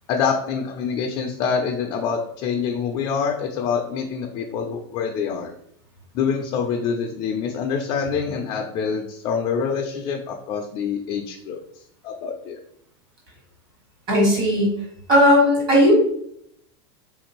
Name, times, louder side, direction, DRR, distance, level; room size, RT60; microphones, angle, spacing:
voice 1, 0.1-5.5 6.1-11.6 12.0-12.6, left 6 dB, 30° left, 2 dB, 0.4 m, -26 dB
voice 2, 14.1-14.7 15.1-15.9, equal, 30° right, -2 dB, 1.5 m, -16 dB
3.5 x 2.5 x 3.0 m, 0.69 s
supercardioid pair, 160°, 14 cm